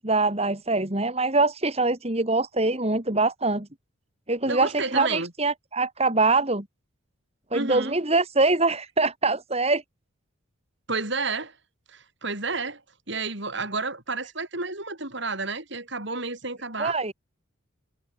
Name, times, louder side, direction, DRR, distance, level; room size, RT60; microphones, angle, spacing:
voice 1, 0.0-3.7 4.3-6.6 7.5-9.8 16.8-17.1, right 3 dB, 30° right, 2.5 m, -24 dB
voice 2, 4.4-5.3 7.5-8.0 10.9-11.6 11.9-12.8 13.1-17.0, right 3 dB, 60° right, 7.0 m, -31 dB
head